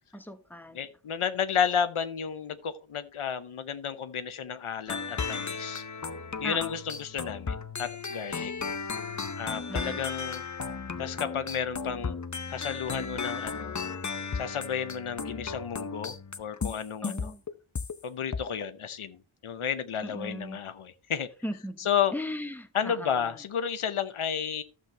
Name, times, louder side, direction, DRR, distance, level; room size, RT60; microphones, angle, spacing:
voice 1, 0.1-0.8 6.4-6.7 9.7-10.0 17.0-17.4 20.0-20.6 21.4-21.9 22.1-23.3, equal, 5° left, 1.1 m, -38 dB
voice 2, 0.7-5.8 6.4-8.5 9.4-10.4 11.0-12.2 12.5-13.8 14.3-17.3 18.0-21.3 21.8-22.1 22.7-24.6, left 8 dB, 85° left, 0.8 m, -32 dB
sound 1, 4.9-18.0 18.3-18.6, left 5 dB, 35° left, 0.8 m, -35 dB
11.5 x 7.5 x 3.3 m
wide cardioid pair, 65°, 49 cm